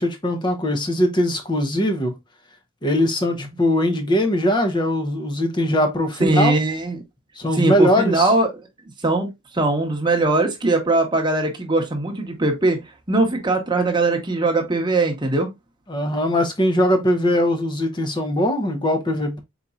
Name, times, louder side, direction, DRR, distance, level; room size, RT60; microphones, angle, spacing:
voice 1, 0.0-2.1 2.8-6.5 7.4-8.3 15.9-19.4, left 1 dB, 20° left, 0.7 m, -21 dB
voice 2, 6.2-7.0 7.5-8.5 9.0-12.8 13.1-15.5, right 2 dB, 20° right, 1.0 m, -20 dB
4.4 x 4.0 x 2.4 m
head